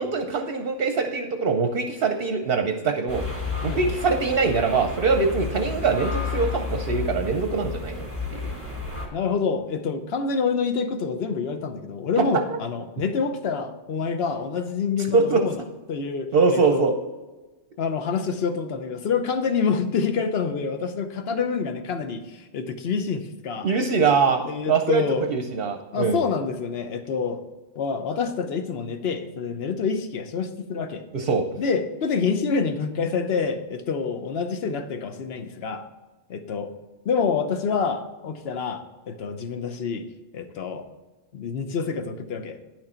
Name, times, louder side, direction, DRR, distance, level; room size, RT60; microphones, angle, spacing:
voice 1, 0.0-3.2 3.6-8.0 8.3-8.5 15.1-15.4 16.3-16.9 23.6-24.4 24.7-25.0 25.3-26.2 31.1-31.5, right 4 dB, 55° right, 5 dB, 0.9 m, -23 dB
sound 1, 3.1-9.1, left 4 dB, 10° left, 1.9 m, -31 dB
voice 2, 3.6-4.0 9.1-15.6 15.9-17.0 17.8-23.7 24.4-25.3 25.9-27.4 27.7-31.1 31.6-35.8 36.3-36.7 37.0-40.0 40.3-40.9 41.3-42.7, left 5 dB, 55° left, 8 dB, 1.0 m, -27 dB
10.0 x 6.3 x 4.4 m, 1.2 s
omnidirectional pair, 1.3 m